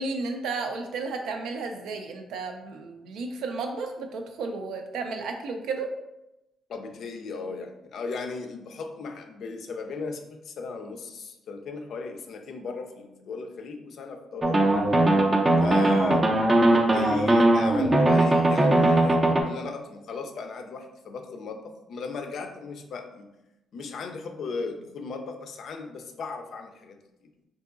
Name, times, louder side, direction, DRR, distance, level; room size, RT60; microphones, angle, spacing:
voice 1, 0.0-5.9, right 4 dB, 80° right, 4 dB, 0.4 m, -33 dB
voice 2, 6.7-14.9 15.6-16.3 16.6-23.3 23.7-27.0, left 4 dB, 60° left, 5 dB, 0.4 m, -37 dB
sound 1, 14.4-19.4, right 1 dB, 20° right, 0.4 m, -20 dB
3.7 x 2.6 x 2.5 m, 0.92 s
cardioid pair, 115°, 0 cm